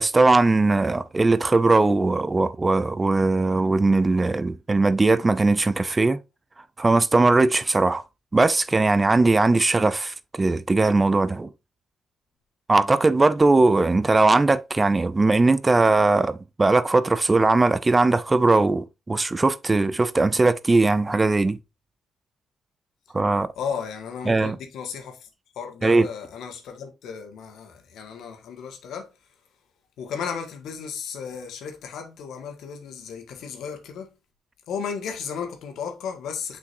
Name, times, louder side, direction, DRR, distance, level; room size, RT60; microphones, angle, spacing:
voice 1, 0.0-6.2 6.8-8.0 8.3-11.5 12.7-21.6 23.1-23.5 24.3-24.6 25.8-26.1, right 3 dB, 20° right, 0.4 m, -20 dB
voice 2, 23.6-25.3 25.5-29.1 30.0-34.1 34.7-36.6, left 6 dB, 75° left, 1.7 m, -34 dB
6.8 x 5.3 x 2.6 m
cardioid pair, 90°, 0 cm